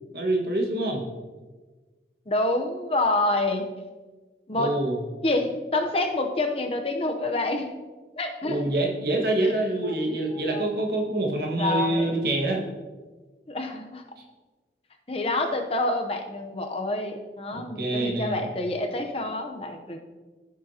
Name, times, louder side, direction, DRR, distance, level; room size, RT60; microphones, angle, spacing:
voice 1, 0.1-1.0 4.5-5.0 8.4-12.6 17.5-18.4, right 2 dB, 60° right, 0 dB, 1.5 m, -26 dB
voice 2, 2.3-3.7 4.5-4.8 5.2-7.7 8.2-8.6 9.4-9.5 9.8-10.7 11.5-12.1 13.5-14.0 15.1-20.0, left 2 dB, 35° left, 4 dB, 0.7 m, -27 dB
15.0 x 6.2 x 2.8 m, 1.3 s
head